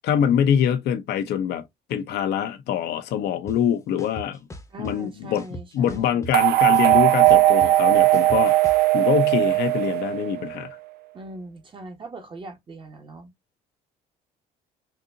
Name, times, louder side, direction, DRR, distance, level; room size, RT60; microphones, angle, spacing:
voice 1, 0.0-1.6 1.9-4.4 4.8-5.4 5.7-8.5 8.9-10.8, left 9 dB, 75° left, 0.7 m, -24 dB
sound 1, 3.5-3.6 4.0-4.9 5.4-6.4 6.7-8.8, equal, 15° left, 0.9 m, -38 dB
voice 2, 4.7-6.2 11.1-13.3, right 2 dB, 30° right, 1.2 m, -40 dB
sound 2, 6.3-10.6, right 16 dB, 70° right, 0.4 m, -18 dB
4.1 x 2.6 x 2.6 m
cardioid pair, 110°, 17 cm